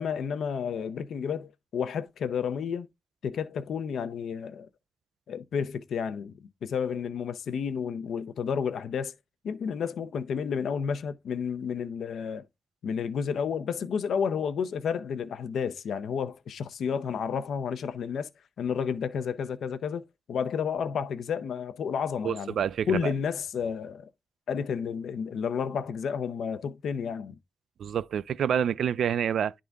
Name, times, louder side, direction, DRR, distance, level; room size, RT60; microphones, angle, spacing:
voice 1, 0.0-2.9 3.2-4.7 5.3-9.1 9.4-12.5 12.8-18.3 18.6-22.5 22.9-24.1 24.5-27.4, left 7 dB, 90° left, 0.6 m, -31 dB
voice 2, 22.2-23.1 27.8-29.5, right 8 dB, 85° right, 0.3 m, -27 dB
10.5 x 3.8 x 3.4 m
wide cardioid pair, 120°, 0 cm